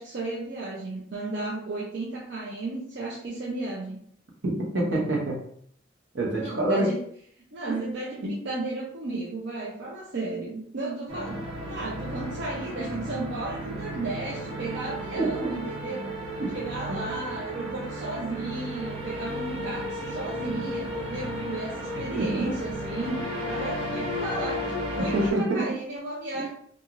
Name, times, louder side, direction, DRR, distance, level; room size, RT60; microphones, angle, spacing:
voice 1, 0.0-4.0 6.3-7.0 7.5-16.2 16.5-26.5, right 2 dB, 60° right, -4 dB, 0.5 m, -34 dB
voice 2, 4.4-5.4 6.1-6.9 7.7-7.8 8.2-8.4 15.2-15.5 16.4-16.5 16.9-17.0 21.9-22.5 25.0-25.7, right 1 dB, 80° right, -2 dB, 0.9 m, -26 dB
sound 1, 11.1-25.3, equal, 30° right, 0.8 m, -34 dB
2.9 x 2.4 x 2.4 m, 0.64 s
head